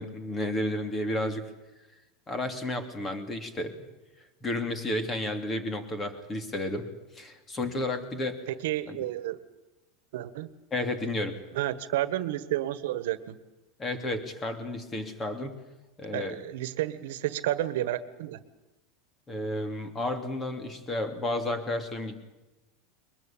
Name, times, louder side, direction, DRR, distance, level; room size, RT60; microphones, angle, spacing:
voice 1, 0.0-1.4 2.3-3.9 4.4-8.4 8.9-9.0 10.7-11.4 13.8-15.5 16.0-16.4 19.3-22.2, left 1 dB, 20° left, 8 dB, 2.9 m, -32 dB
voice 2, 8.5-9.4 10.1-10.5 11.5-13.4 16.1-18.4, right 14 dB, 75° right, 14 dB, 1.6 m, -31 dB
22.5 x 21.0 x 8.8 m, 1.0 s
supercardioid pair, 155°, 0 cm